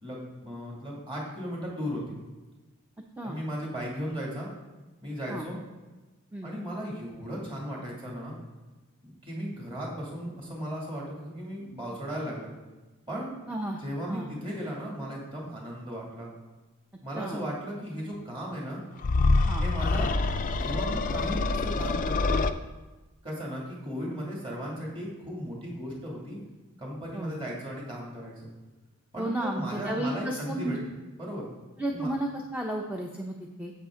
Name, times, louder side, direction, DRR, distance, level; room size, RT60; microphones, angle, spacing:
voice 1, 0.0-2.2 3.2-4.5 5.0-5.6 6.4-8.3 9.0-12.5 13.1-13.3 13.8-16.3 17.0-18.8 19.6-22.5 23.2-26.4 26.8-28.5 29.1-31.5 31.9-32.1, equal, 25° right, -3 dB, 2.4 m, -36 dB
voice 2, 13.5-13.8 14.1-14.3 17.1-17.4 19.5-19.6 27.1-27.3 29.2-30.8 31.8-33.7, right 1 dB, 5° right, 0 dB, 0.6 m, -33 dB
sound 1, 19.0-22.5, left 3 dB, 35° left, 0.4 m, -26 dB
9.3 x 7.8 x 3.8 m, 1.2 s
head